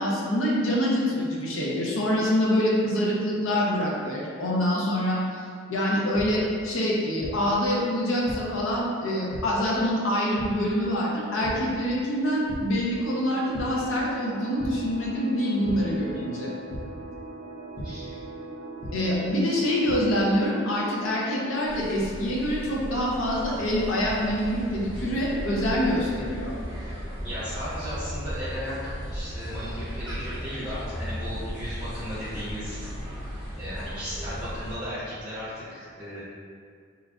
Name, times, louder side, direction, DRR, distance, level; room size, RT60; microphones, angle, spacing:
voice 1, 0.0-5.4 5.7-16.5 18.9-26.5, equal, 75° left, -4 dB, 0.6 m, -25 dB
sound 1, 6.1-6.2 7.2-7.3 8.3-8.4 9.3-9.4 10.4-10.5 11.4-11.5 12.0-12.2 12.5-12.6 13.5-13.6 14.6-14.7 15.6-15.7 16.7-16.8 17.8-17.9 18.8-18.9 19.6-20.0, left 1 dB, 35° left, 0.3 m, -36 dB
sound 2, 13.8-23.1, right 3 dB, 85° right, 0.5 m, -42 dB
voice 2, 17.7-18.1 27.2-32.9 33.6-36.2, equal, 5° right, -13 dB, 1.1 m, -36 dB
sound 3, 21.7-34.8, equal, 20° right, 0.6 m, -36 dB
3.1 x 2.4 x 2.4 m, 2.1 s
head